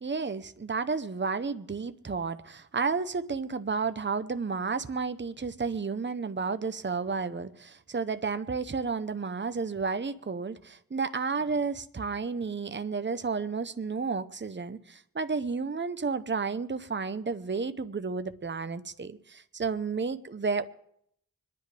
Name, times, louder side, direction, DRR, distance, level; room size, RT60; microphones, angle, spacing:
voice 1, 0.0-20.7, right 4 dB, 35° right, 0.8 m, -32 dB
25.5 x 10.5 x 3.4 m
cardioid pair, 40°, 34 cm